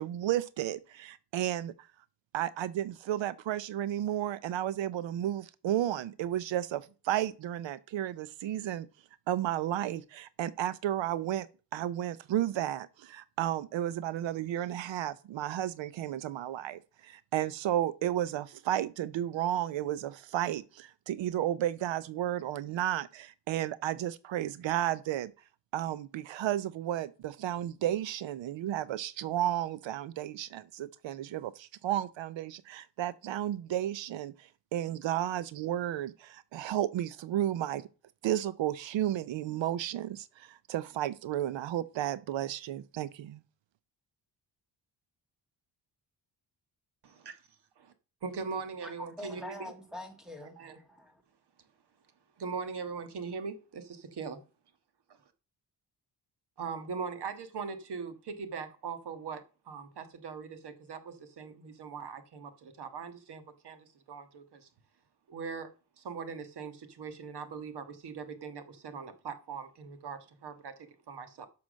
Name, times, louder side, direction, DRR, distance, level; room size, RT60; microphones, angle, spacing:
voice 1, 0.0-1.9 2.3-8.9 9.3-11.5 11.7-25.3 25.7-37.8 38.2-43.4, right 12 dB, 85° right, 0.7 m, -33 dB
voice 2, 47.0-47.3 47.8-47.9 48.2-49.7 50.4-50.8 52.4-54.4 56.6-64.7 65.3-65.7 66.0-71.5, right 5 dB, 60° right, 1.5 m, -41 dB
voice 3, 48.8-51.2, left 1 dB, ahead, 1.9 m, -45 dB
11.5 x 6.1 x 6.3 m
wide cardioid pair, 165°, 44 cm